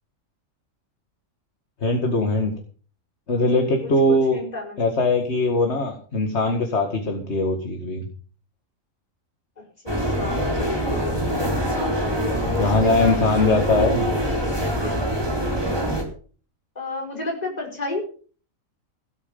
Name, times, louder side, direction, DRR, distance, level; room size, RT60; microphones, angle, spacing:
voice 1, 1.8-2.5 3.3-4.4 4.8-8.1 12.6-14.1, left 2 dB, 55° left, 4 dB, 2.3 m, -21 dB
voice 2, 3.8-5.0 9.6-15.5 16.8-18.1, left 3 dB, 30° left, 0 dB, 5.3 m, -33 dB
sound 1, 9.9-16.0, equal, 20° right, 3.8 m, -24 dB
16.5 x 9.2 x 5.5 m, 0.41 s
omnidirectional pair, 1.4 m